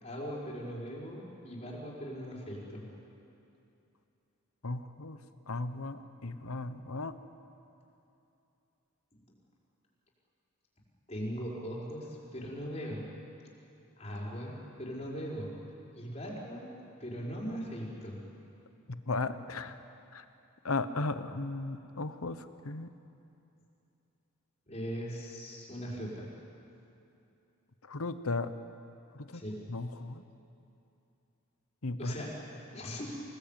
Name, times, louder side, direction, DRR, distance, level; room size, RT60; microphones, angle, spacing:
voice 1, 0.0-2.9 9.1-9.2 11.1-13.1 14.0-15.5 15.9-16.7 17.0-18.2 24.7-26.3 29.3-29.6 32.0-32.3 32.7-33.2, equal, 30° left, -4 dB, 5.2 m, -39 dB
voice 2, 4.6-5.2 5.5-7.1 19.1-19.7 20.1-20.2 20.6-22.4 22.6-22.9 27.9-28.5 29.1-29.4 29.7-30.2 31.8-32.1, left 3 dB, 75° left, 11 dB, 1.1 m, -35 dB
26.5 x 18.5 x 9.1 m, 2.8 s
head